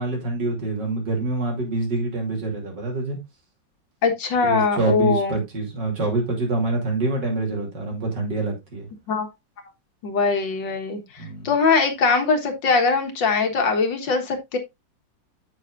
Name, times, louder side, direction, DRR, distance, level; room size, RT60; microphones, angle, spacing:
voice 1, 0.0-3.2 4.4-8.9 11.2-11.5, right 2 dB, 65° right, 3.5 m, -26 dB
voice 2, 4.0-5.4 9.1-9.3 10.0-14.6, left 4 dB, 70° left, 2.2 m, -21 dB
8.1 x 7.8 x 2.5 m
omnidirectional pair, 2.1 m